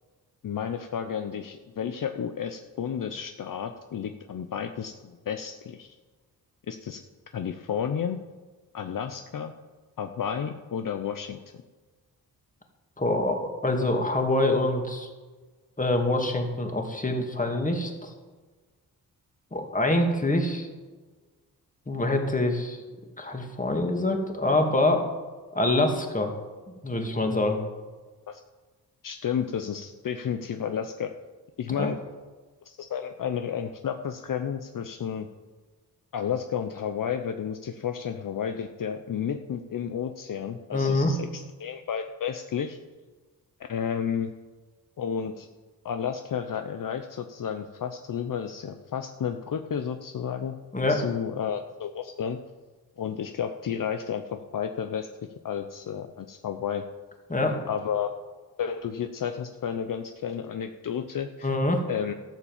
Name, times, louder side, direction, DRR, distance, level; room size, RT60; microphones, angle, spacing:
voice 1, 0.4-6.0 6.7-7.0 7.3-8.2 8.7-9.5 10.0-11.4 28.3-28.4 29.0-31.1 31.6-32.0 32.6-35.3 36.1-42.8 43.7-44.3 45.0-45.5 45.8-50.6 50.9-52.4 53.0-55.1 55.4-56.8 57.7-58.1 58.6-61.5 61.9-62.1, left 8 dB, 55° left, 7 dB, 0.8 m, -32 dB
voice 2, 13.0-15.1 15.8-18.1 19.5-20.7 21.9-22.8 23.2-25.0 25.5-26.3 26.8-27.6 31.8-31.9 40.7-41.1 50.7-51.0 57.3-57.6 61.4-61.8, left 2 dB, 20° left, 3 dB, 2.4 m, -25 dB
13.5 x 7.2 x 7.4 m, 1.4 s
cardioid pair, 75°, 38 cm